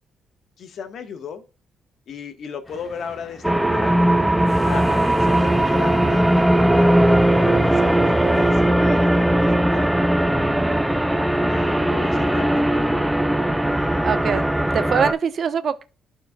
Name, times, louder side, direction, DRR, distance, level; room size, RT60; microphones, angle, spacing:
voice 1, 0.6-1.4 2.1-4.0 4.6-9.9 10.2-12.8, left 6 dB, 65° left, 1.2 m, -35 dB
sound 1, 2.6-8.6, left 2 dB, 20° left, 1.1 m, -41 dB
sound 2, 3.4-15.1, right 1 dB, 5° right, 0.5 m, -18 dB
voice 2, 14.0-14.4 14.7-15.8, right 6 dB, 55° right, 0.8 m, -22 dB
12.0 x 4.4 x 2.3 m
cardioid pair, 90°, 0 cm